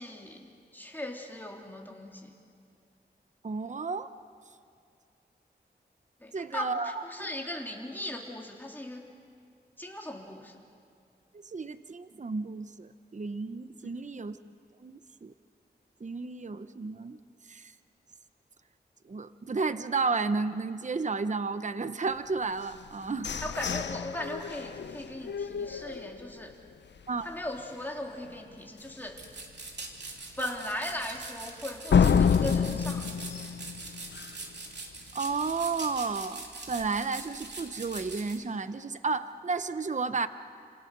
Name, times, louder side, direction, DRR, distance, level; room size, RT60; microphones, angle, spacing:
voice 1, 0.0-2.3 6.2-9.1 9.8-10.5 13.8-14.0 23.4-26.5 27.2-29.4 30.4-33.0, left 1 dB, 10° left, -1 dB, 3.6 m, -38 dB
voice 2, 3.4-4.1 6.3-7.3 11.3-14.4 14.8-15.3 16.0-17.2 17.4-17.7 19.0-23.3 27.1-27.3 35.1-40.3, right 4 dB, 45° right, 11 dB, 0.8 m, -32 dB
sound 1, 22.6-26.5 27.0-27.1 27.4-27.8 28.2-28.3 28.8-28.9 31.9-34.6, left 6 dB, 85° left, 0.6 m, -28 dB
sound 2, 29.2-38.4, right 3 dB, 80° right, 2.9 m, -43 dB
30.0 x 27.5 x 6.7 m, 2.3 s
wide cardioid pair, 90°, 18 cm